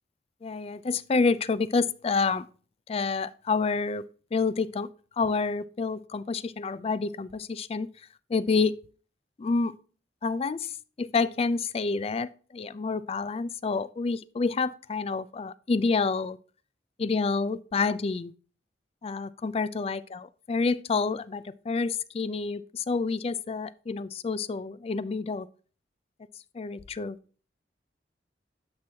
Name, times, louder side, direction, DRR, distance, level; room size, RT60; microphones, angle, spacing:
voice 1, 0.4-2.5 2.9-4.0 4.3-4.9 5.2-7.9 8.3-8.7 9.4-9.7 10.2-10.7 11.0-16.4 17.0-18.3 19.0-25.5 26.5-27.2, left 4 dB, 35° left, 0.4 m, -28 dB
9.6 x 6.0 x 2.8 m
head